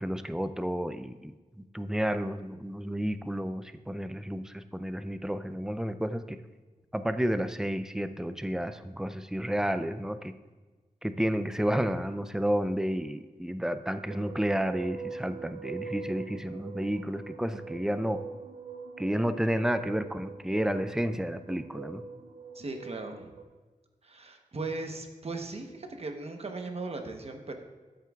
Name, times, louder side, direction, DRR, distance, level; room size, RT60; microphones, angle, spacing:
voice 1, 0.0-6.4 6.9-10.3 11.0-18.2 19.0-22.0, equal, 5° right, 11 dB, 0.4 m, -31 dB
sound 1, 14.1-23.4, right 5 dB, 80° right, 0.5 m, -43 dB
voice 2, 22.5-23.3 24.0-27.5, right 3 dB, 45° right, 4 dB, 1.0 m, -38 dB
13.0 x 7.6 x 2.4 m, 1.3 s
wide cardioid pair, 110°, 14 cm